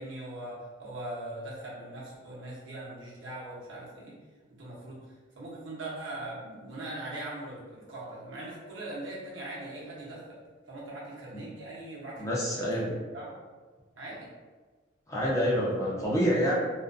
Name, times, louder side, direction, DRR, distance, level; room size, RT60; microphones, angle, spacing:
voice 1, 0.0-4.1 4.6-5.1 5.4-10.4 10.7-13.4 14.0-14.3, right 1 dB, 75° right, -6 dB, 0.8 m, -41 dB
voice 2, 12.2-12.9 15.1-16.5, equal, 15° left, -5 dB, 0.4 m, -27 dB
2.5 x 2.4 x 2.3 m, 1.4 s
head